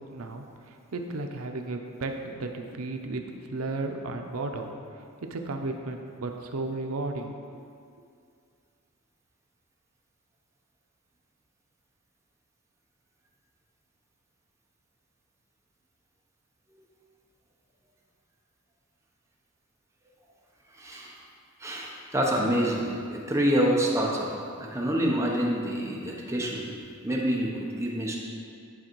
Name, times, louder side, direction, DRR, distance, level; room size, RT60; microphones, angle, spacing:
voice 1, 0.0-3.2 3.5-4.7 5.3-7.3, right 2 dB, 85° right, 4 dB, 0.6 m, -34 dB
voice 2, 20.7-21.2 21.6-26.7 27.0-28.2, equal, 15° right, -3 dB, 0.9 m, -27 dB
10.5 x 3.9 x 4.6 m, 2.3 s
head